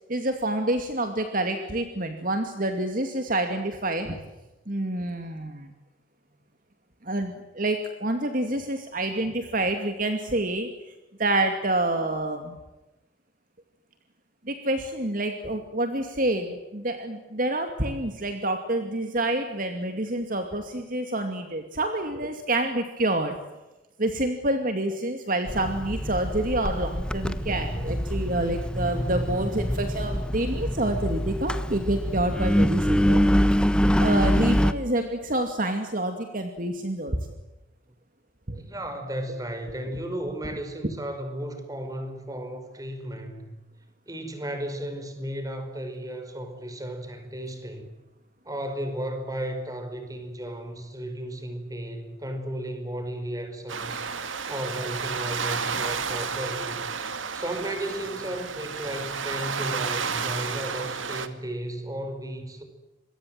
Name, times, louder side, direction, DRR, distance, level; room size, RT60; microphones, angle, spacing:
voice 1, 0.1-4.2 4.7-5.7 7.0-10.7 11.2-12.6 14.5-23.4 24.0-33.3 34.0-37.2 38.5-38.6 40.8-40.9, right 1 dB, 45° right, 6 dB, 2.5 m, -27 dB
Engine, 25.5-34.7, equal, 5° left, 1.2 m, -25 dB
voice 2, 38.5-43.5 44.1-47.9 48.4-54.0 54.5-56.9 57.3-62.6, right 1 dB, 20° right, 7 dB, 5.3 m, -34 dB
sound 1, 53.7-61.3, right 5 dB, 85° right, 2.2 m, -31 dB
27.5 x 23.0 x 7.8 m, 1.0 s
head